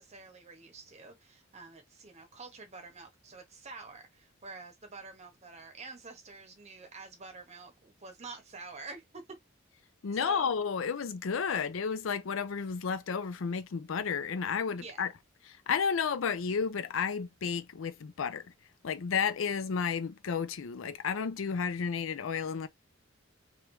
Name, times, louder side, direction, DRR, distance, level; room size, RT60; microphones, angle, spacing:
voice 1, 0.0-9.4 10.1-10.5 14.7-15.1, right 3 dB, 35° right, 0.9 m, -48 dB
voice 2, 10.0-15.1 15.5-18.4 18.8-22.7, left 6 dB, 70° left, 0.5 m, -32 dB
3.2 x 2.4 x 3.0 m
head